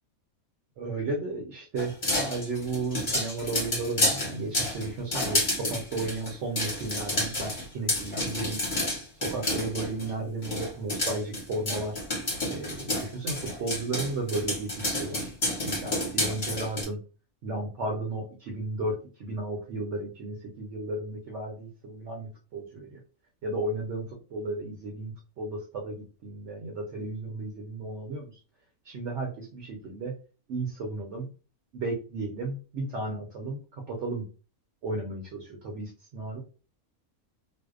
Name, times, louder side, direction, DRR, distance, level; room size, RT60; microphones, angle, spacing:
voice 1, 0.8-8.7 9.1-12.0 12.5-15.3 15.6-17.0 17.4-23.0 23.4-28.4 28.8-30.1 30.5-31.3 31.7-34.3 34.8-36.4, right 2 dB, 65° right, 1 dB, 0.8 m, -34 dB
sound 1, 1.8-10.1 10.4-16.8, left 1 dB, 40° left, 1.0 m, -30 dB
2.6 x 2.0 x 2.3 m, 0.35 s
omnidirectional pair, 1.5 m